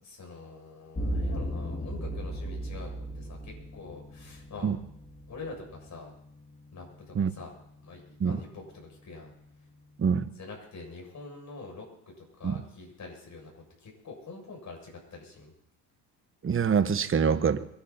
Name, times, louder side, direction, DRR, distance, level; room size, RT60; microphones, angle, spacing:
voice 1, 0.0-4.7 5.3-6.1 6.7-7.5 7.8-9.3 10.4-11.9 12.2-15.5, left 3 dB, 40° left, 0 dB, 7.3 m, -45 dB
sound 1, 0.9-10.0, equal, 20° left, 3.9 m, -38 dB
voice 2, 10.0-10.3 12.4-12.6 16.4-17.7, right 6 dB, 30° right, 11 dB, 1.1 m, -25 dB
23.0 x 11.0 x 4.3 m, 0.73 s
supercardioid pair, 80°, 42 cm